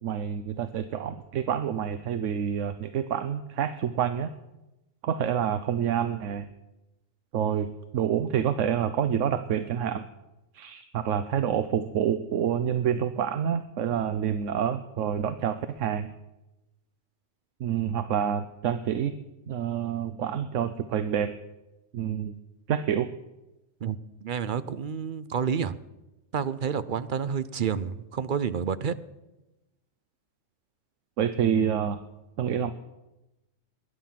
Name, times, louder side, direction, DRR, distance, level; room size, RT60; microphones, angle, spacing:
voice 1, 0.0-4.3 5.0-6.5 7.3-10.1 10.5-16.1 17.6-19.1 19.5-21.3 21.9-22.3 22.7-23.1 31.2-32.0 32.4-32.7, right 9 dB, 80° right, 11 dB, 1.1 m, -27 dB
voice 2, 23.8-25.8 26.3-28.9, right 7 dB, 50° right, 15 dB, 0.7 m, -29 dB
20.0 x 11.0 x 5.9 m, 1.0 s
omnidirectional pair, 1.3 m